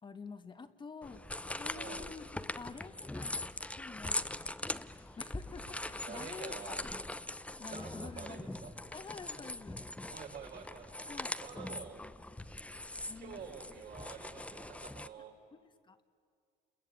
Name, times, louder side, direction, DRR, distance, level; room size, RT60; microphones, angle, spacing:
voice 1, 0.0-1.2 1.5-3.3 3.7-4.6 5.2-6.9 7.5-8.6 8.9-9.8 11.1-11.3 13.1-13.7 15.5-16.0, left 5 dB, 30° left, 8 dB, 1.3 m, -49 dB
sound 1, 1.0-15.1, left 2 dB, 5° left, 0.8 m, -42 dB
voice 2, 1.7-2.0 6.1-6.8 7.6-8.7 10.1-12.0 13.1-15.4, right 7 dB, 70° right, 2 dB, 4.4 m, -48 dB
29.0 x 22.0 x 9.2 m, 2.1 s
cardioid pair, 110°, 17 cm